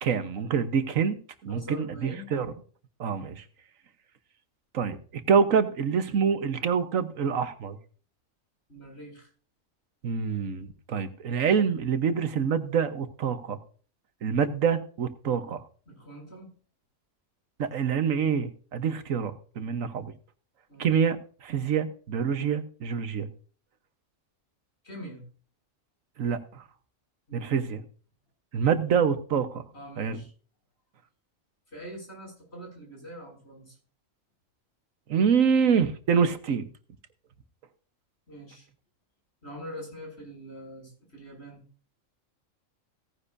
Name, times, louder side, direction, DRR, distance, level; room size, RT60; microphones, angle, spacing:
voice 1, 0.0-2.5 3.0-3.4 4.7-5.0 5.3-7.8 10.0-13.6 14.2-15.6 17.6-20.1 20.8-23.3 26.2-26.6 27.3-27.8 28.5-29.6 30.0-30.2 35.1-36.7, right 6 dB, 90° right, 10 dB, 1.5 m, -26 dB
voice 2, 1.5-2.3 8.7-9.3 15.9-16.5 20.7-20.9 24.8-25.2 27.3-27.6 29.7-30.3 31.7-33.8 38.3-38.7 39.4-41.6, equal, 55° left, -1 dB, 6.7 m, -43 dB
17.0 x 9.9 x 2.6 m, 0.41 s
omnidirectional pair, 1.3 m